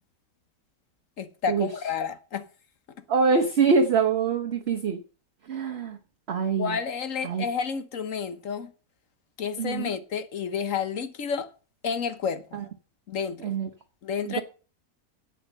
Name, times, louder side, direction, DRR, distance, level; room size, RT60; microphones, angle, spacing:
voice 1, 1.2-2.4 6.6-8.7 9.4-11.5 11.8-12.6 13.1-13.5 14.0-14.4, left 6 dB, 60° left, 1.4 m, -30 dB
voice 2, 3.1-5.0 5.5-6.0 6.3-6.7 7.2-7.4 9.6-9.9 12.5-12.6 13.4-13.7 14.3-14.4, right 5 dB, 45° right, 1.2 m, -24 dB
10.5 x 8.2 x 6.5 m
omnidirectional pair, 1.6 m